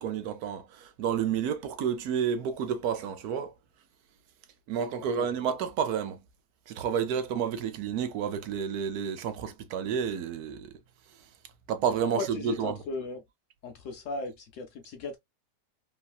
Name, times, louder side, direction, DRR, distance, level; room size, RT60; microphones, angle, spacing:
voice 1, 0.0-3.5 4.7-6.2 6.7-10.7 11.7-12.8, right 7 dB, 70° right, 1.0 m, -30 dB
voice 2, 5.0-5.3 12.0-13.2 13.6-15.2, left 3 dB, 65° left, 0.8 m, -37 dB
3.1 x 2.7 x 2.2 m
omnidirectional pair, 1.8 m